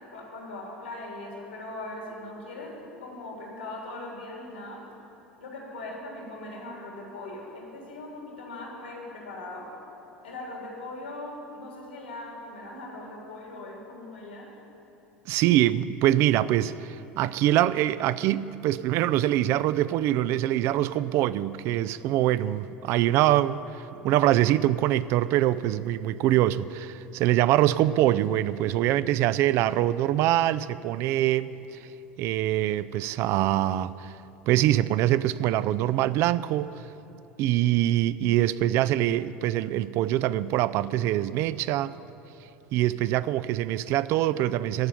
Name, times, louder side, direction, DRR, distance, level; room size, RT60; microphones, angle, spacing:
voice 1, 0.1-2.7 3.0-4.8 5.4-9.7 10.2-14.5, left 2 dB, 85° left, 3.3 m, -40 dB
voice 2, 15.3-31.5 32.2-34.1 34.5-36.7 37.4-41.9 42.7-44.9, right 13 dB, 50° right, 0.4 m, -24 dB
14.5 x 5.6 x 9.7 m
figure-of-eight pair, 75°, 6 cm